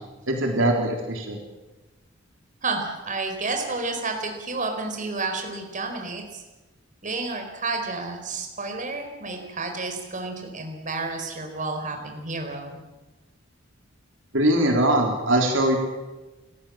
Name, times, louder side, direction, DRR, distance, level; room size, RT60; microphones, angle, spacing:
voice 1, 0.3-1.4 14.3-15.8, right 1 dB, 70° right, 1 dB, 3.6 m, -21 dB
voice 2, 2.6-6.4 7.0-12.8, right 3 dB, 40° right, 4 dB, 4.4 m, -30 dB
29.5 x 15.0 x 7.5 m, 1.1 s
head